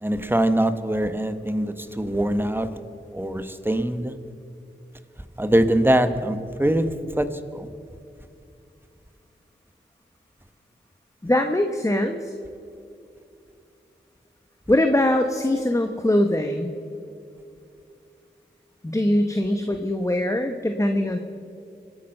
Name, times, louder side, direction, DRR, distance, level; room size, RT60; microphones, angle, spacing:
voice 1, 0.0-2.7 3.1-4.1 5.4-7.3 7.5-7.7, right 1 dB, 10° right, 10 dB, 1.1 m, -23 dB
voice 2, 11.2-12.3 14.7-16.7 18.8-21.2, left 1 dB, 15° left, 5 dB, 1.0 m, -22 dB
25.5 x 9.0 x 5.5 m, 2.6 s
cardioid pair, 50°, 20 cm